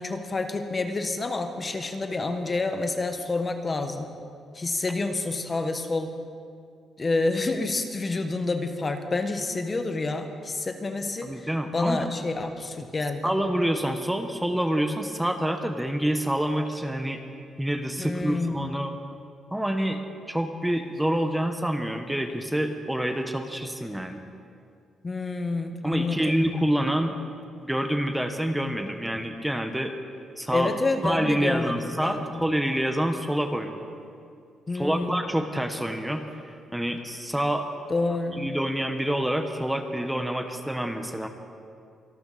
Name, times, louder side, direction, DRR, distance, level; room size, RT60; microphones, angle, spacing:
voice 1, 0.0-4.1 4.5-6.1 7.0-13.3 18.0-18.7 25.0-26.4 30.5-32.4 34.7-35.2 37.9-38.5, left 3 dB, 30° left, 7 dB, 1.2 m, -28 dB
voice 2, 11.2-12.1 13.2-17.2 17.6-18.9 19.5-20.0 20.3-24.2 25.8-27.2 27.6-29.9 30.4-30.7 31.0-33.9 34.7-37.7 38.3-41.3, right 1 dB, 5° right, 6 dB, 1.1 m, -27 dB
24.5 x 13.0 x 4.2 m, 2.4 s
cardioid pair, 90°, 0 cm